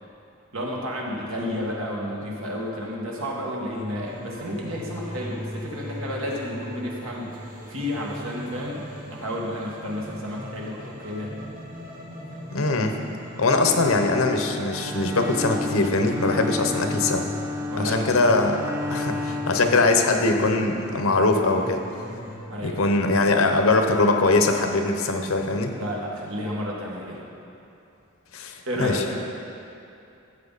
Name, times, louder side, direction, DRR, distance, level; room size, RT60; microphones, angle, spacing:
voice 1, 0.5-7.3 7.7-11.3 16.6-16.9 17.7-18.3 22.5-22.8 25.7-27.2 28.7-29.2, left 1 dB, 75° right, -3 dB, 1.8 m, -31 dB
sound 1, 4.0-22.4, equal, 45° right, 1.7 m, -39 dB
voice 2, 12.5-13.0 13.4-17.3 17.8-18.6 18.9-21.8 22.6-25.7 28.3-29.0, left 3 dB, 75° left, 4 dB, 0.9 m, -22 dB
Bowed string instrument, 13.4-20.6, left 2 dB, 15° right, 0.4 m, -32 dB
13.0 x 7.7 x 4.1 m, 2.7 s
head